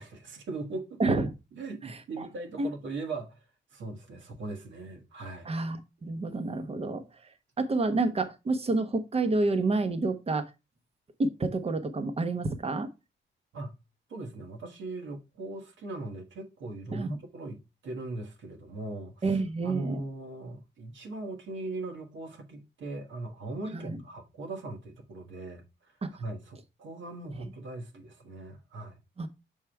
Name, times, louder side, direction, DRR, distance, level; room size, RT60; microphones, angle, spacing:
voice 1, 0.0-1.0 1.5-3.4 3.7-5.5 13.5-13.7 14.1-19.2 19.6-25.9 26.2-29.0, right 2 dB, 75° right, 1.4 m, -39 dB
voice 2, 1.0-1.3 1.8-2.3 2.6-2.7 5.5-7.1 7.6-10.5 11.2-12.9 16.9-17.2 19.2-20.0 23.7-24.0 26.0-26.1 29.2-29.3, right 3 dB, 30° right, 0.8 m, -29 dB
6.5 x 3.6 x 4.5 m
wide cardioid pair, 125°, 20 cm